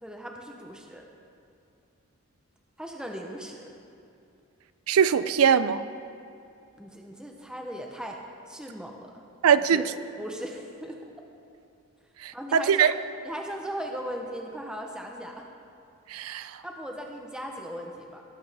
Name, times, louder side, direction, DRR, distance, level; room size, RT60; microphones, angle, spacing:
voice 1, 0.0-1.0 2.8-3.6 6.8-8.2 8.5-9.2 9.6-9.9 10.2-11.0 12.3-12.8 13.2-15.4 16.6-18.2, equal, 5° right, 1 dB, 0.7 m, -38 dB
voice 2, 4.9-5.8 9.4-9.8 12.2-12.9 16.1-16.5, right 7 dB, 75° right, 14 dB, 0.4 m, -21 dB
18.0 x 7.7 x 3.4 m, 2.7 s
head